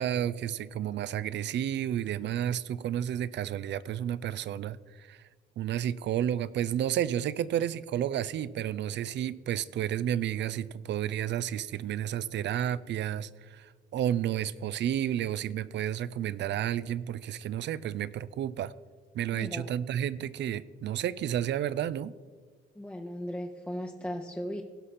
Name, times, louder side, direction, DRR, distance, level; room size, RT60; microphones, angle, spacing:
voice 1, 0.0-5.2 5.6-18.7 19.1-22.1, right 10 dB, 65° right, 18 dB, 0.4 m, -31 dB
voice 2, 19.3-19.6 22.7-24.6, equal, 5° left, 1 dB, 0.7 m, -37 dB
17.0 x 5.8 x 4.2 m, 1.5 s
cardioid pair, 90°, 20 cm